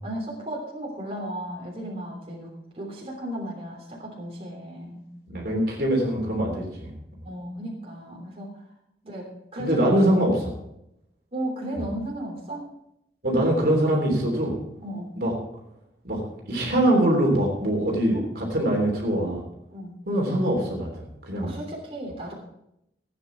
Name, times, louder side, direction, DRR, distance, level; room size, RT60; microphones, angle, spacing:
voice 1, 0.0-5.1 7.2-8.6 9.0-10.0 11.3-12.7 14.8-15.1 18.1-18.3 19.7-20.0 21.4-22.3, right 1 dB, 35° right, -2 dB, 3.2 m, -35 dB
voice 2, 5.3-7.0 9.6-10.5 13.2-14.5 15.2-15.3 16.0-16.2 16.5-19.4 20.1-21.5, right 1 dB, 60° right, 0 dB, 3.2 m, -23 dB
16.0 x 9.3 x 4.6 m, 0.82 s
head